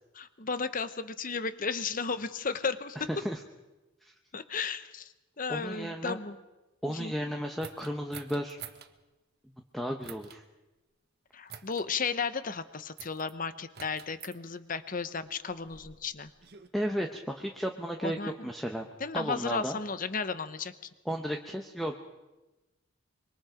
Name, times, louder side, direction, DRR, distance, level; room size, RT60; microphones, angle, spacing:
voice 1, 0.1-3.1 4.3-6.4 6.9-7.2 11.3-16.3 18.0-18.5 19.0-20.7, left 5 dB, 40° left, 12 dB, 1.0 m, -34 dB
voice 2, 3.0-3.4 4.0-4.1 5.5-6.2 6.8-8.6 9.7-10.4 16.7-18.2 18.4-18.9 19.1-19.8 21.1-22.0, equal, ahead, 3 dB, 1.0 m, -34 dB
sound 1, 7.6-8.9 10.0-10.4 11.5-11.9 13.0-13.3 13.7-14.4 15.3-16.7, right 8 dB, 50° right, 1.3 m, -48 dB
25.0 x 23.5 x 5.1 m, 1.1 s
head